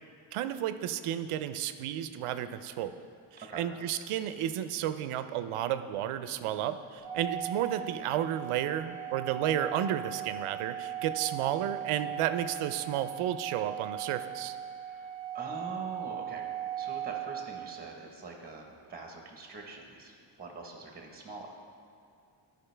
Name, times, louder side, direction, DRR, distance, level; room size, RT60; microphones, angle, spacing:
voice 1, 0.3-3.0 3.6-14.6, right 11 dB, 90° right, 11 dB, 0.6 m, -32 dB
Organ, 7.0-17.9, right 10 dB, 50° left, 1.8 m, -38 dB
voice 2, 14.8-16.4 16.8-21.5, right 3 dB, 20° right, 2 dB, 1.0 m, -44 dB
14.0 x 5.2 x 3.3 m, 2.3 s
cardioid pair, 130°, 49 cm